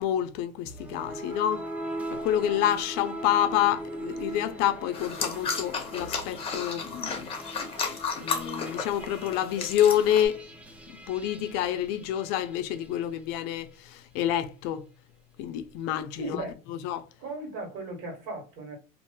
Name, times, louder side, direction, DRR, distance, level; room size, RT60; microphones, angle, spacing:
voice 1, 0.0-1.6 2.1-7.3 8.2-10.4 11.1-14.8 15.4-16.4 16.7-17.1, left 11 dB, 65° left, 0.5 m, -28 dB
sound 1, 0.7-13.0, right 1 dB, 5° right, 0.6 m, -40 dB
sound 2, 4.9-10.3, left 5 dB, 30° left, 0.7 m, -33 dB
voice 2, 16.2-16.5 17.2-18.8, right 2 dB, 65° right, 1.5 m, -37 dB
3.0 x 2.4 x 2.2 m
supercardioid pair, 115°, 18 cm